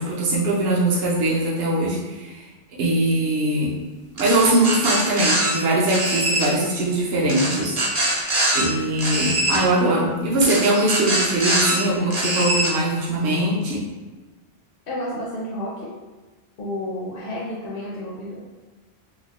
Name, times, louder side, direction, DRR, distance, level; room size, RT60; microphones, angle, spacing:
voice 1, 0.0-2.4 2.8-3.7 4.2-8.2 8.5-13.8, right 1 dB, 70° right, -5 dB, 0.9 m, -21 dB
sound 1, 4.2-5.5 5.9-6.5 7.3-8.6 9.0-9.6 10.4-11.8 12.1-12.7, right 1 dB, 35° right, 0.6 m, -23 dB
voice 2, 14.9-15.9 16.6-18.4, left 1 dB, 60° left, -5 dB, 0.8 m, -31 dB
4.2 x 2.3 x 2.9 m, 1.3 s
omnidirectional pair, 1.1 m